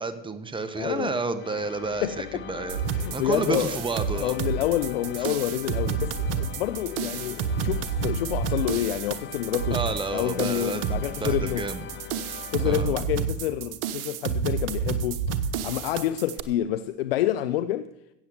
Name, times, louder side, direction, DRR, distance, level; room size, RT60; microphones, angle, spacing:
voice 1, 0.0-4.4 9.7-11.9 12.6-12.9, right 3 dB, 15° right, 1.5 m, -31 dB
voice 2, 0.8-1.2 2.0-2.5 2.9-3.8 4.2-9.8 10.1-11.7 12.5-15.2 15.6-17.9, left 13 dB, 85° left, 0.6 m, -28 dB
sound 1, 1.4-13.3, left 9 dB, 40° left, 0.9 m, -41 dB
sound 2, 2.7-16.4, right 6 dB, 80° right, 1.0 m, -30 dB
14.0 x 8.4 x 8.0 m
hypercardioid pair, 75°, 29 cm